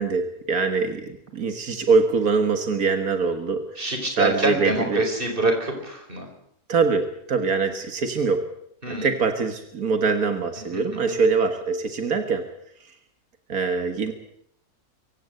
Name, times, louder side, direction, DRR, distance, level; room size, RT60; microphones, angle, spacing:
voice 1, 0.0-5.1 6.7-8.5 8.9-12.5 13.5-14.1, right 4 dB, 85° right, 7 dB, 2.1 m, -23 dB
voice 2, 3.8-6.3 8.8-9.1 10.7-11.1, right 2 dB, 40° right, 4 dB, 4.8 m, -26 dB
24.0 x 16.0 x 7.9 m, 0.73 s
omnidirectional pair, 1.5 m